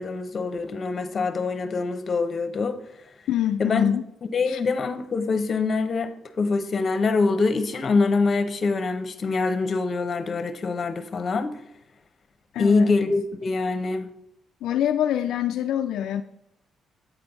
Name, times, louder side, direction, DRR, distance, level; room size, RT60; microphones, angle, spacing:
voice 1, 0.0-2.8 3.6-3.8 4.3-6.1 6.4-11.6 12.6-14.1, left 4 dB, 45° left, 0.9 m, -24 dB
voice 2, 3.3-4.0 4.5-4.6 12.5-12.9 14.6-16.2, left 10 dB, 80° left, 0.3 m, -25 dB
8.3 x 4.4 x 5.4 m
cardioid pair, 90°, 0 cm